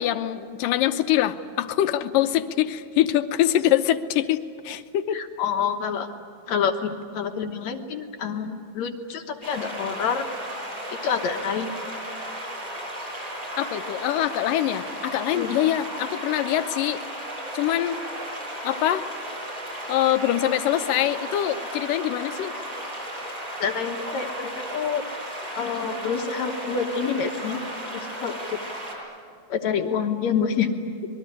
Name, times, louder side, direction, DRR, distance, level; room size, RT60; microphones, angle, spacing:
voice 1, 0.0-5.2 13.6-17.0 17.5-18.0 18.6-19.1 19.9-22.5, left 12 dB, 85° left, 9 dB, 2.6 m, -24 dB
voice 2, 5.1-6.1 6.5-10.3 11.0-11.7 15.3-15.5 23.6-25.0 25.6-27.6 27.9-28.6 29.5-30.7, left 7 dB, 65° left, 5 dB, 2.2 m, -27 dB
sound 1, 9.4-29.0, equal, 35° right, 8.2 m, -34 dB
26.5 x 21.5 x 9.9 m, 2.1 s
omnidirectional pair, 3.8 m